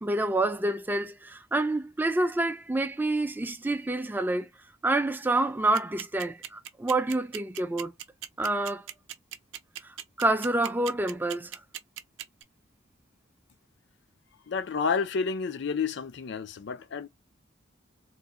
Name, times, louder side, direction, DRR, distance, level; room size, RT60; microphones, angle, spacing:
voice 1, 0.0-4.5 4.8-7.9 8.4-8.9 9.8-11.5, right 2 dB, 10° right, 0.4 m, -28 dB
sound 1, 5.7-12.4, right 11 dB, 80° right, 0.5 m, -38 dB
voice 2, 14.5-17.1, left 5 dB, 65° left, 0.4 m, -30 dB
2.5 x 2.1 x 3.7 m
head